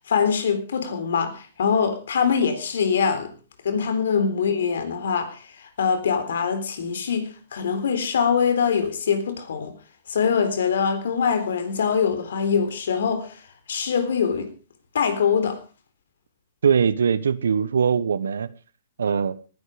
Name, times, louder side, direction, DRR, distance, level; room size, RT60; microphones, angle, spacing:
voice 1, 0.1-3.3 3.6-5.4 5.8-9.7 10.1-13.3 13.7-14.5 14.9-15.6, left 6 dB, 75° left, 3.8 m, -23 dB
voice 2, 16.6-18.5 19.0-19.4, right 6 dB, 85° right, 1.2 m, -21 dB
19.0 x 11.0 x 5.1 m
hypercardioid pair, 140°, 0 cm